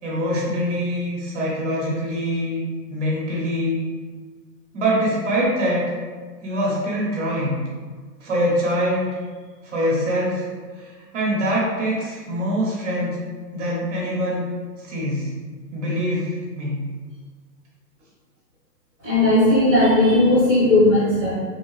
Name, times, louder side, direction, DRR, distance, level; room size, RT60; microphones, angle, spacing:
voice 1, 0.0-3.8 4.7-5.8 6.4-7.6 8.2-9.1 9.6-10.5 10.8-13.2 13.5-14.4 14.8-15.3 15.7-16.9, equal, 45° right, -5 dB, 1.1 m, -24 dB
voice 2, 19.0-21.3, left 2 dB, 5° left, -18 dB, 0.9 m, -16 dB
3.1 x 2.8 x 3.1 m, 1.5 s
hypercardioid pair, 165°, 50 cm